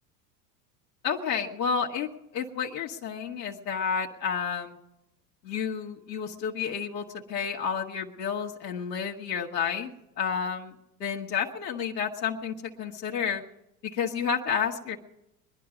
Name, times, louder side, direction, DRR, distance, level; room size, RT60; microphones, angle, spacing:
voice 1, 1.0-4.8 5.4-9.9 10.2-13.4 13.8-15.0, left 7 dB, 80° left, 0 dB, 1.6 m, -31 dB
22.0 x 11.0 x 5.0 m, 0.88 s
hypercardioid pair, 90°, 48 cm